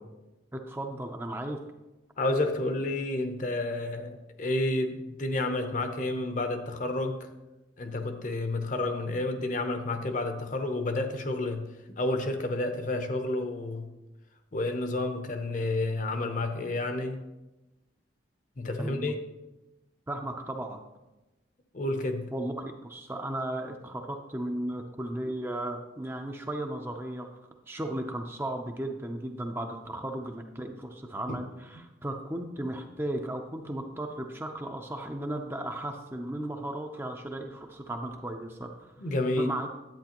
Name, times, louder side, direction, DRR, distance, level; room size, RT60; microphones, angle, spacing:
voice 1, 0.5-1.6 18.8-19.1 20.1-20.8 22.3-27.4 27.7-38.9 39.4-39.7, right 1 dB, 10° right, 4 dB, 0.5 m, -35 dB
voice 2, 2.2-7.3 7.8-11.6 12.0-13.8 14.5-17.2 18.6-19.2 21.7-22.3 39.0-39.5, left 2 dB, 40° left, 7 dB, 0.7 m, -30 dB
10.5 x 8.6 x 2.9 m, 1.0 s
head